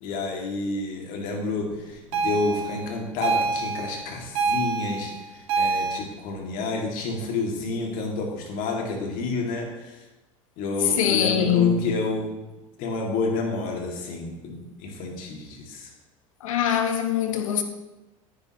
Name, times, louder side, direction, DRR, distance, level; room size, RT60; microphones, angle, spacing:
voice 1, 0.0-10.0 10.6-12.3 12.8-15.9, left 3 dB, 55° left, 2.4 m, -29 dB
sound 1, 2.1-6.0, right 4 dB, 60° right, 2.0 m, -26 dB
voice 2, 11.0-11.9 16.4-17.6, left 8 dB, 75° left, 1.2 m, -23 dB
10.5 x 9.5 x 3.1 m
hypercardioid pair, 80°, 17 cm